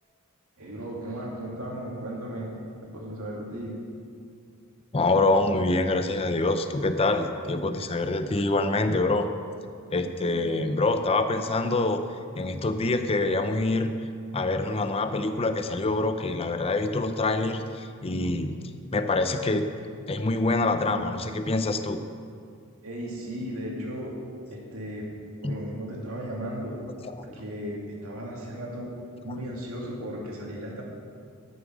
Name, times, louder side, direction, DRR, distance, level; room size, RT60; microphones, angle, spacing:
voice 1, 0.6-3.8 22.8-24.2 24.5-25.1 25.4-26.8 27.2-28.9 29.2-30.8, equal, 75° right, -3 dB, 2.5 m, -36 dB
voice 2, 4.9-9.3 9.9-12.0 12.3-13.9 14.3-18.6 18.9-19.7 20.1-22.0 25.4-25.6 27.0-27.4, left 2 dB, 25° left, 8 dB, 0.6 m, -25 dB
12.5 x 7.1 x 6.2 m, 2.2 s
head